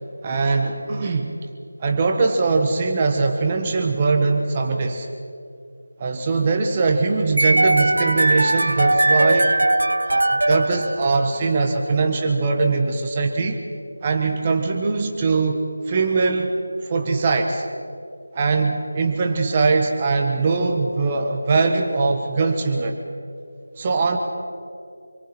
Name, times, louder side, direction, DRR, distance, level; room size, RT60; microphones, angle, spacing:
voice 1, 0.2-1.4 1.8-5.1 6.0-9.5 10.0-13.6 14.0-16.5 16.8-17.7 18.3-23.0 23.8-24.2, right 4 dB, 20° right, 4 dB, 1.2 m, -21 dB
sound 1, 7.4-11.5, right 1 dB, 85° right, 0.5 m, -19 dB
28.5 x 23.0 x 4.4 m, 2.4 s
figure-of-eight pair, 170°, 0 cm